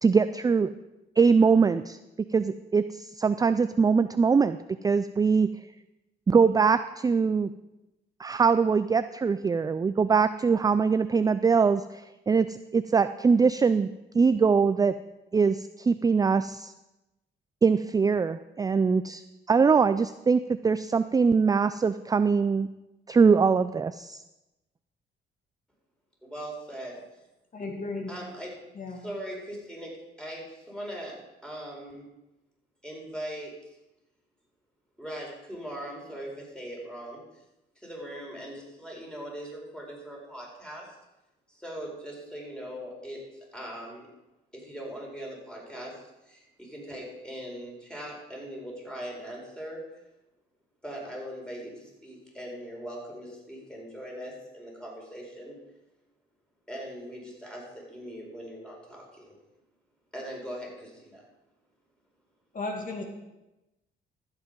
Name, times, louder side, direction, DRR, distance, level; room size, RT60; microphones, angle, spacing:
voice 1, 0.0-0.7 1.2-2.0 2.3-4.6 4.8-5.5 6.3-7.5 8.2-13.9 14.1-15.0 15.3-16.7 17.6-19.2 19.5-22.7 23.1-24.2, right 5 dB, 20° right, 12 dB, 0.3 m, -22 dB
voice 2, 26.2-27.0 28.1-28.6 28.9-32.1 32.8-33.5 35.0-37.4 37.8-41.0 41.5-43.2 43.5-44.1 44.5-49.8 50.8-55.6 56.7-59.3 60.1-61.2, equal, 5° left, -2 dB, 4.5 m, -40 dB
voice 3, 27.5-28.1 28.8-29.0 62.5-63.0, left 3 dB, 45° left, 1 dB, 2.3 m, -34 dB
13.0 x 8.1 x 5.3 m, 0.97 s
cardioid pair, 90°, 20 cm